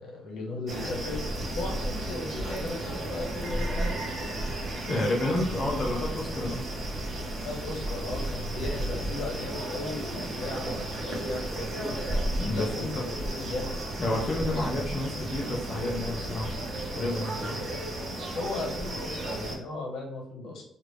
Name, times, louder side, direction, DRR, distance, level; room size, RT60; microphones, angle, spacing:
voice 1, 0.0-4.0 7.4-12.0 12.5-13.7 17.6-17.7 18.3-20.6, left 2 dB, 65° left, -1 dB, 1.0 m, -36 dB
sound 1, 0.7-19.6, right 1 dB, 40° right, 0.7 m, -33 dB
voice 2, 4.9-6.6 12.4-13.0 14.0-16.5 16.9-17.6, left 1 dB, 25° left, -2 dB, 0.5 m, -30 dB
3.2 x 2.5 x 3.1 m, 0.69 s
cardioid pair, 155°, 0 cm